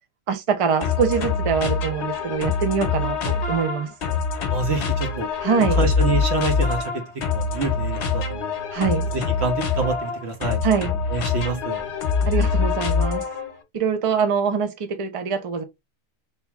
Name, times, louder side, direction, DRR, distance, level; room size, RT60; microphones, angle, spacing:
voice 1, 0.3-3.9 5.4-5.8 8.7-9.1 10.6-10.9 12.3-13.2 13.7-15.6, right 6 dB, 40° right, 0.5 m, -23 dB
sound 1, 0.8-13.6, left 5 dB, 60° left, 1.0 m, -24 dB
voice 2, 4.5-5.3 5.8-6.9 7.3-8.5 9.1-11.9, right 4 dB, 55° right, 1.2 m, -27 dB
3.5 x 3.0 x 2.9 m
omnidirectional pair, 1.4 m